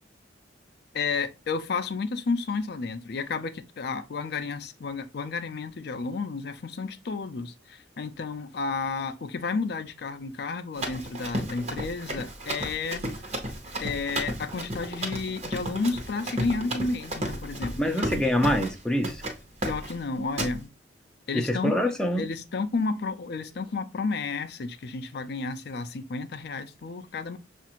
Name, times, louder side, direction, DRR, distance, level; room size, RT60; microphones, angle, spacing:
voice 1, 0.9-13.0 13.8-18.2 19.6-20.7 21.3-21.8 22.2-27.4, left 4 dB, 60° left, 0.4 m, -31 dB
Run, 10.8-18.8 19.0-19.4 19.6-20.0 20.4-20.6, right 1 dB, 35° right, 0.9 m, -33 dB
voice 2, 17.8-19.2 21.3-22.3, left 1 dB, 5° left, 0.4 m, -25 dB
6.4 x 2.5 x 2.9 m
head